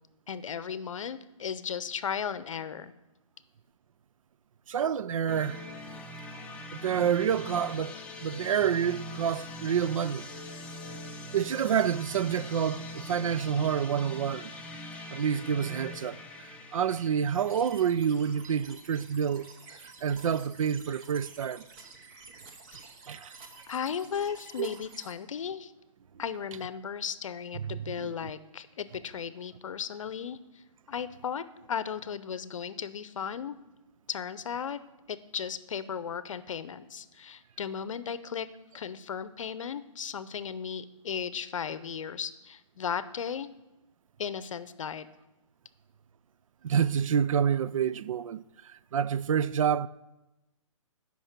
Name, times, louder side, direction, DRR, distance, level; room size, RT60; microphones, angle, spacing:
voice 1, 0.3-2.9 22.7-22.9 23.7-25.7 26.2-30.4 30.9-33.5 34.1-34.8 35.1-38.5 38.7-43.5 44.2-45.1, left 7 dB, 70° left, 0.7 m, -36 dB
voice 2, 4.7-5.6 6.7-10.3 11.3-14.5 15.1-16.2 16.7-19.5 20.0-21.7 23.1-23.3 24.6-24.7 27.7-28.1 46.6-49.9, right 8 dB, 75° right, 0.4 m, -28 dB
sound 1, 5.3-19.0, left 1 dB, 5° left, 0.6 m, -43 dB
sound 2, 17.3-25.1, right 4 dB, 25° right, 0.9 m, -50 dB
9.0 x 5.4 x 5.9 m
hypercardioid pair, 150°, 17 cm